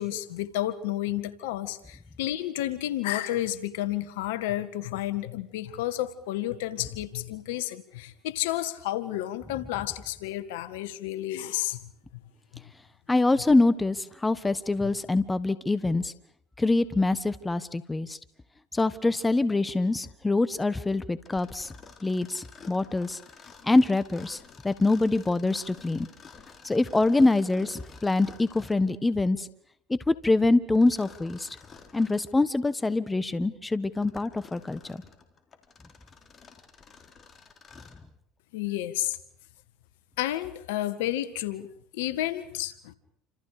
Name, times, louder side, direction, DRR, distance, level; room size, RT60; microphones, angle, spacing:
voice 1, 0.0-11.9 12.5-12.6 14.8-14.9 38.5-39.2 40.2-41.7 41.9-42.9, left 14 dB, 80° left, 13 dB, 1.7 m, -31 dB
voice 2, 13.1-16.1 16.6-18.2 18.7-21.7 22.0-23.2 23.6-24.4 24.6-26.1 26.6-29.5 29.9-31.5 31.9-35.0, left 2 dB, 15° left, 15 dB, 1.4 m, -25 dB
Mechanisms, 21.2-28.9 30.7-32.3 32.9-33.0 33.7-38.1, left 5 dB, 35° left, 3.8 m, -51 dB
29.0 x 27.0 x 5.1 m, 0.67 s
hypercardioid pair, 85°, 0 cm